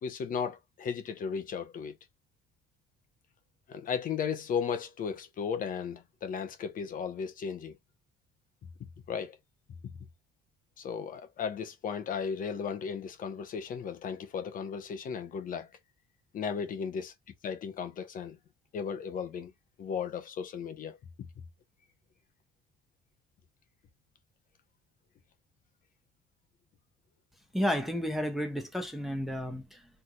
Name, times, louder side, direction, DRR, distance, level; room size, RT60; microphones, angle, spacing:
voice 1, 0.0-2.0 3.7-7.7 9.1-9.4 10.8-15.7 16.3-17.1 17.4-18.4 18.7-19.5 19.8-21.0, left 6 dB, 55° left, 1.1 m, -35 dB
voice 2, 27.5-29.9, equal, ahead, 1.2 m, -32 dB
4.5 x 3.6 x 2.4 m
cardioid pair, 110°, 17 cm